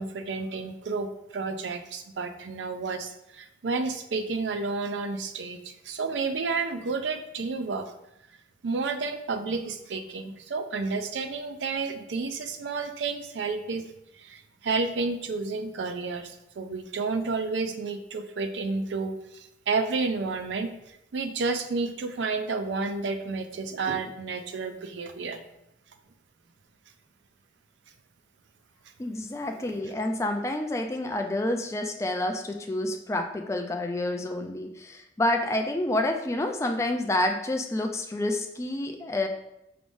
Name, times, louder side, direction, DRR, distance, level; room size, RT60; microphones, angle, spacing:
voice 1, 0.0-7.9 8.6-13.8 14.1-25.4 29.6-29.7, right 4 dB, 85° right, 8 dB, 0.4 m, -31 dB
voice 2, 29.0-39.3, left 1 dB, 15° left, 4 dB, 0.3 m, -28 dB
4.8 x 3.5 x 2.5 m, 0.85 s
head